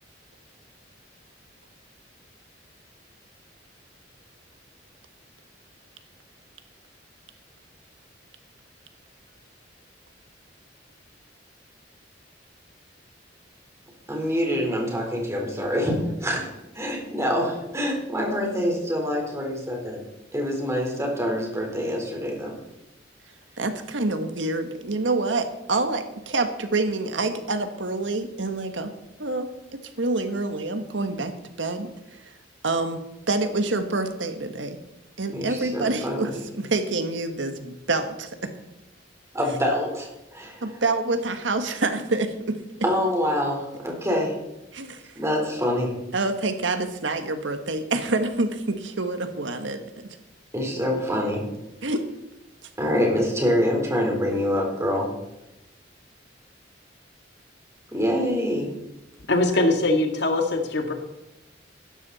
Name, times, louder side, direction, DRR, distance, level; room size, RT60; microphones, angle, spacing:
voice 1, 14.1-20.0 20.3-22.6 35.3-36.4 39.3-40.6 42.8-44.4 45.2-45.9 50.5-51.5 52.8-55.1 57.9-58.7, equal, 15° right, 0 dB, 3.9 m, -25 dB
voice 2, 23.6-28.9 29.2-31.3 31.6-32.2 32.6-33.0 33.3-34.8 35.2-36.3 36.6-38.5 40.6-42.6 44.7-45.0 46.1-50.1 51.8-52.0, right 2 dB, 90° right, 8 dB, 1.4 m, -27 dB
voice 3, 59.3-60.9, left 2 dB, 65° left, 4 dB, 1.9 m, -22 dB
16.0 x 13.0 x 4.1 m, 0.91 s
head